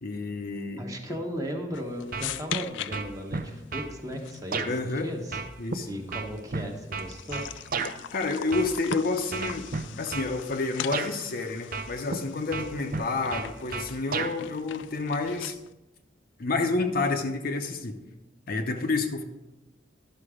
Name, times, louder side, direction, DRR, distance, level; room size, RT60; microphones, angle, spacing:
voice 1, 0.0-0.8 4.6-5.1 5.6-5.9 8.1-9.7 10.0-15.6 16.4-18.0 18.5-19.2, left 3 dB, 50° left, 5 dB, 0.7 m, -29 dB
voice 2, 0.8-5.4 5.9-7.4, equal, 20° right, 1 dB, 1.2 m, -36 dB
sound 1, 1.7-15.7, left 11 dB, 70° left, 0.3 m, -42 dB
sound 2, 2.1-2.6 2.9-3.9 4.5-4.7 5.3-7.9 8.5-9.0 9.3-10.3 10.9-11.1 11.7-12.2 12.5-14.3, right 4 dB, 50° right, 0.6 m, -32 dB
11.5 x 5.9 x 4.9 m, 1.0 s
head